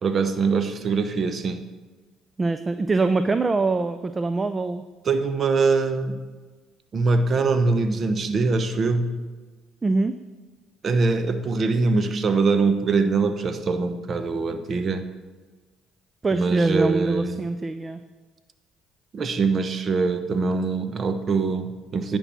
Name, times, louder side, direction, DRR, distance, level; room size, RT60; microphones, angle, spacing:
voice 1, 0.0-1.6 5.0-6.2 6.9-9.2 10.8-15.0 16.3-17.5 19.1-22.2, right 4 dB, 45° right, 9 dB, 0.9 m, -23 dB
voice 2, 2.4-4.8 9.8-10.2 16.2-18.0, right 3 dB, 25° right, 11 dB, 0.5 m, -23 dB
9.9 x 5.5 x 6.0 m, 1.3 s
hypercardioid pair, 60°, 0 cm